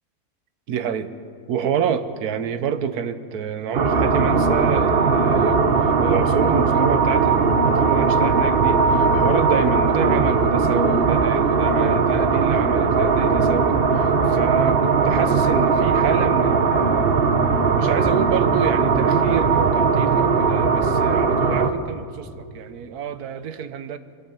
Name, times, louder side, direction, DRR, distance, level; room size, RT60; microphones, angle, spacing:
voice 1, 0.7-1.1 1.5-17.2 17.8-24.0, right 7 dB, 80° right, 11 dB, 1.4 m, -28 dB
sound 1, 3.7-21.7, right 4 dB, 45° right, 1.0 m, -19 dB
23.0 x 16.5 x 7.5 m, 2.4 s
omnidirectional pair, 1.6 m